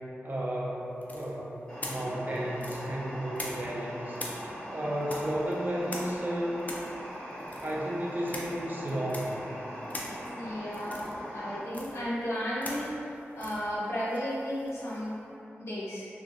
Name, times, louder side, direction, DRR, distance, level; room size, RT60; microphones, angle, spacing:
voice 1, 0.2-6.6 7.6-9.6, right 1 dB, 40° right, -4 dB, 0.5 m, -33 dB
sound 1, 1.0-3.8 4.1-15.1, left 1 dB, 35° left, 0.4 m, -43 dB
sound 2, 1.7-11.6, equal, 20° left, 1.5 m, -41 dB
voice 2, 10.4-12.9 13.4-15.1 15.6-16.1, equal, 80° left, -8 dB, 0.8 m, -34 dB
3.0 x 2.5 x 2.6 m, 2.9 s
wide cardioid pair, 70°, 5 cm